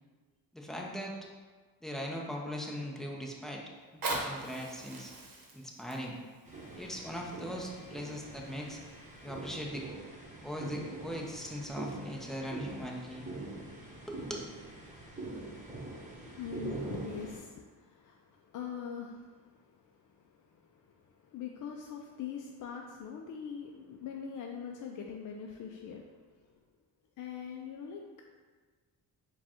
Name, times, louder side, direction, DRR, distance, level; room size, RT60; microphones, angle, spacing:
voice 1, 0.5-1.3 1.8-3.6 3.9-5.1 5.5-6.1 6.7-8.8 9.2-9.8 10.4-13.3 14.1-14.5, equal, ahead, -1 dB, 0.6 m, -40 dB
Fire, 3.8-8.7 9.4-9.5, right 2 dB, 55° right, 1.0 m, -41 dB
sound 1, 6.4-17.4, right 2 dB, 15° right, 1.1 m, -44 dB
voice 2, 16.1-26.6 27.2-28.0, left 7 dB, 50° left, 1 dB, 0.4 m, -43 dB
4.7 x 2.4 x 4.3 m, 1.4 s
cardioid pair, 100°, 42 cm